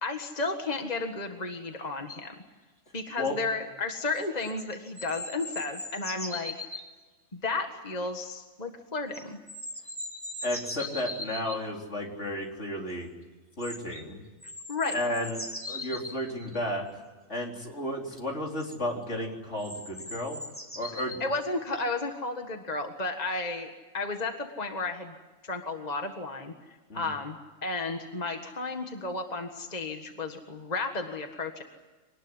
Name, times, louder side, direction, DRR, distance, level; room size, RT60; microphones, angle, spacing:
voice 1, 0.0-2.3 2.9-6.5 7.3-9.4 14.7-15.0 21.2-25.1 25.4-26.5 26.9-27.4 27.6-31.6, left 3 dB, 30° left, 4 dB, 1.8 m, -33 dB
sound 1, 2.1-2.2 4.2-6.9 9.1-11.6 13.6-14.0 14.4-16.6 18.2-18.3 18.6-18.7 19.6-21.2 21.7-21.8, left 1 dB, 10° left, 3.1 m, -40 dB
voice 2, 10.4-13.1 13.6-14.2 14.9-16.8 17.3-20.4 20.8-21.3 26.9-27.1, left 1 dB, 60° left, 0 dB, 4.4 m, -33 dB
25.0 x 19.5 x 9.8 m, 1.3 s
omnidirectional pair, 1.4 m